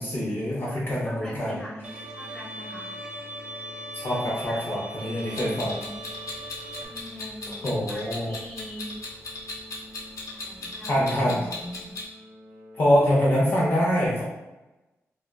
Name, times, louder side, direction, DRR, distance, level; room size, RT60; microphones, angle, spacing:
voice 1, 0.0-1.6 3.9-5.7 7.6-8.3 10.9-11.4 12.8-14.2, equal, 45° left, -5 dB, 0.6 m, -24 dB
voice 2, 0.6-2.9 4.1-4.6 5.0-5.9 6.8-8.9 10.3-11.9 12.7-13.0, equal, 15° left, -6 dB, 1.0 m, -42 dB
sound 1, 0.8-13.7, left 1 dB, 75° right, 0.4 m, -49 dB
Bowed string instrument, 1.8-6.9, right 1 dB, 25° right, 0.5 m, -39 dB
Clock, 5.4-12.0, left 2 dB, 90° left, 0.7 m, -37 dB
3.4 x 2.1 x 2.3 m, 1.0 s
wide cardioid pair, 120°, 5 cm